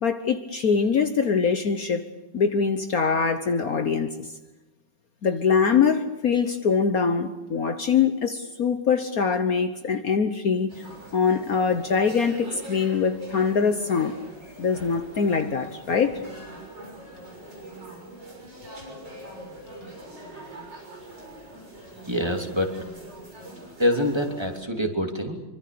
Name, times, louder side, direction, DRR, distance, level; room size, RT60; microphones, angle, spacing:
voice 1, 0.0-2.0 2.3-4.3 5.2-10.8 11.1-14.2 14.6-16.2, left 6 dB, 55° left, 8 dB, 1.5 m, -23 dB
sound 1, 10.7-24.6, right 1 dB, 75° right, 7.4 m, -43 dB
voice 2, 22.1-22.7 23.8-25.4, left 1 dB, 15° right, 3 dB, 2.8 m, -25 dB
25.0 x 25.0 x 6.9 m, 1.1 s
omnidirectional pair, 2.0 m